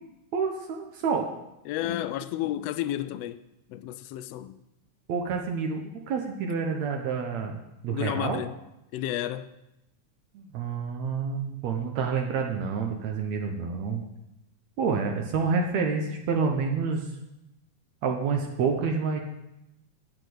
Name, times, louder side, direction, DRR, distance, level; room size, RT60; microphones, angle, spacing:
voice 1, 0.3-1.3 5.1-7.6 7.8-8.4 10.3-14.0 14.8-17.0 18.0-19.2, right 5 dB, 75° right, 2.1 m, -28 dB
voice 2, 1.6-3.4 3.7-4.6 7.9-8.5 8.9-9.5, left 13 dB, 85° left, 1.4 m, -31 dB
8.3 x 7.6 x 7.9 m
omnidirectional pair, 3.3 m